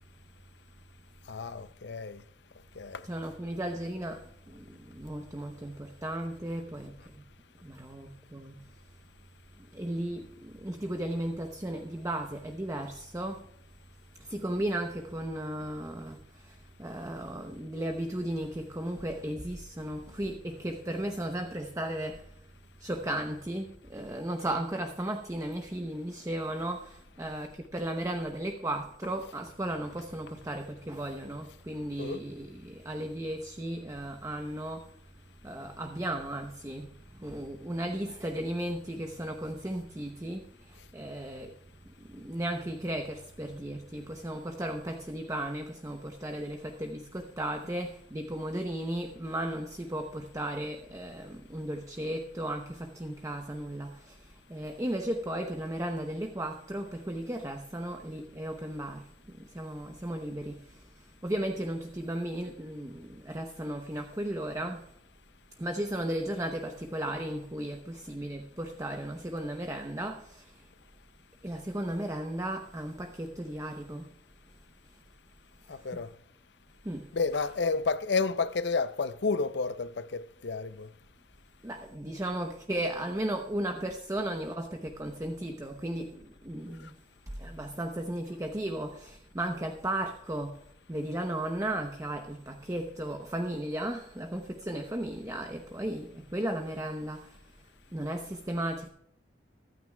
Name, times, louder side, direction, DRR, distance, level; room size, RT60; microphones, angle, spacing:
voice 1, 1.3-2.2 2.8-3.1 32.0-32.2 75.7-76.1 77.1-80.9, left 4 dB, 65° left, 0.6 m, -31 dB
voice 2, 3.1-7.2 7.6-8.6 9.6-13.5 14.2-22.3 22.8-34.9 35.4-36.9 37.2-41.6 42.0-64.9 65.6-70.7 71.4-74.1 75.7-75.9 76.8-77.1 81.6-86.9 87.3-90.6 90.9-97.4 97.9-98.9, right 1 dB, 15° right, 0.8 m, -35 dB
23.5 x 9.4 x 2.3 m
head